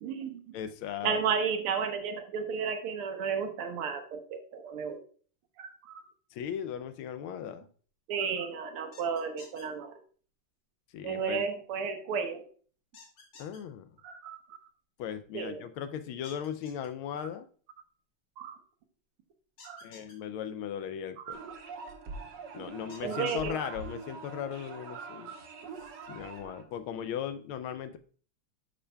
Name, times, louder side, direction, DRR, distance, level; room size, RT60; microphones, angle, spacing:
voice 1, 0.0-0.4 1.0-5.0 5.6-6.0 8.1-10.0 11.0-12.5 14.0-14.4 15.3-15.6 17.2-17.3 18.4-18.6 19.6-19.9 21.3-21.6 23.0-23.6 24.9-25.4, right 6 dB, 85° right, 6 dB, 1.8 m, -33 dB
voice 2, 0.5-1.2 6.3-7.7 10.9-11.5 13.4-13.9 15.0-17.5 19.8-21.4 22.5-25.4 26.1-28.0, left 9 dB, 75° left, 10 dB, 1.3 m, -37 dB
sound 1, 8.9-9.6 12.9-13.6 16.2-16.9 19.6-20.1 22.9-23.5, left 3 dB, 60° left, 2.2 m, -52 dB
sound 2, 21.3-26.6, right 4 dB, 60° right, 1.5 m, -44 dB
11.0 x 5.1 x 2.2 m, 0.44 s
omnidirectional pair, 2.4 m